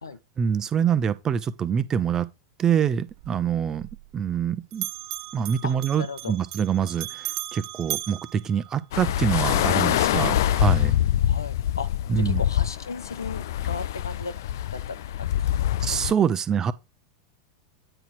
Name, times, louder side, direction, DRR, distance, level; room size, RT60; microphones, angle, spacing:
voice 1, 0.4-2.3 2.6-4.9 5.3-10.9 12.1-12.4 15.8-16.7, right 8 dB, 25° right, 0.9 m, -25 dB
Bell, 3.1-4.5 4.7-9.2, right 19 dB, 50° right, 0.6 m, -37 dB
voice 2, 5.6-6.3 11.3-11.9 12.2-14.3 14.7-15.7, left 4 dB, 85° left, 0.9 m, -36 dB
sound 1, 8.9-16.1, left 12 dB, 65° left, 0.4 m, -25 dB
9.2 x 4.0 x 4.6 m
figure-of-eight pair, 90°, 2 cm